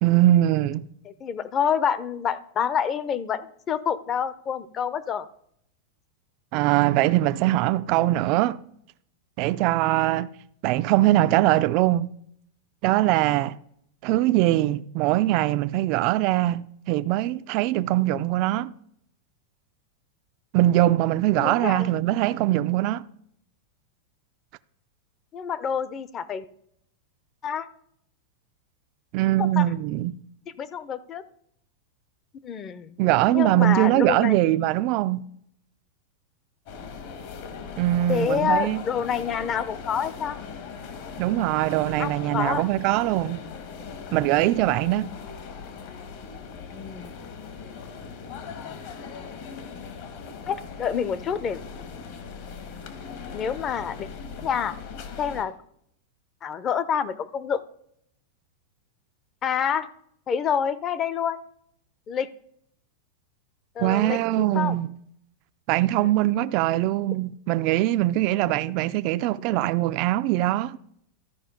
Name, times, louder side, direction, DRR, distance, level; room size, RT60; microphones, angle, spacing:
voice 1, 0.0-0.8 6.5-8.6 9.4-10.3 10.6-12.1 12.8-13.6 14.0-18.7 20.5-23.0 29.1-30.1 33.0-35.2 37.8-38.8 41.2-43.4 44.1-45.1 63.8-64.9 65.7-70.8, right 15 dB, 45° right, 0.3 m, -22 dB
voice 2, 1.0-5.3 21.4-21.9 25.3-26.4 27.4-27.7 29.4-29.7 30.6-31.2 32.4-33.0 33.3-34.4 38.1-40.5 42.0-42.7 46.7-47.1 48.6-48.8 50.5-51.6 53.3-54.1 54.4-54.8 55.2-55.5 56.4-57.6 59.4-59.9 60.3-61.4 62.1-62.3 63.8-64.8, left 7 dB, 25° left, 0.6 m, -27 dB
sound 1, 36.7-55.4, left 5 dB, 55° left, 1.6 m, -39 dB
13.0 x 5.0 x 5.2 m
supercardioid pair, 140°, 0 cm